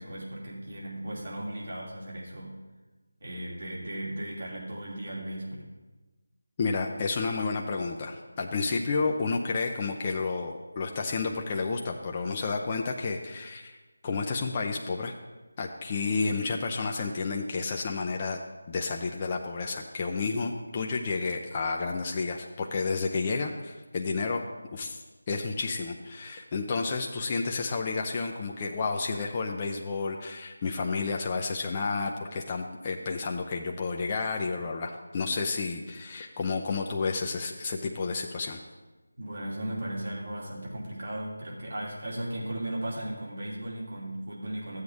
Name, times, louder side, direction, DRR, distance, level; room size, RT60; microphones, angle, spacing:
voice 1, 0.0-2.6 3.2-5.7 39.2-44.8, right 1 dB, 60° right, -4 dB, 2.8 m, -36 dB
voice 2, 6.6-13.8 14.0-15.1 15.6-18.4 18.7-24.4 24.7-38.6, left 4 dB, 25° left, 1 dB, 0.6 m, -31 dB
13.0 x 8.0 x 3.5 m, 1.2 s
figure-of-eight pair, 165°, 0 cm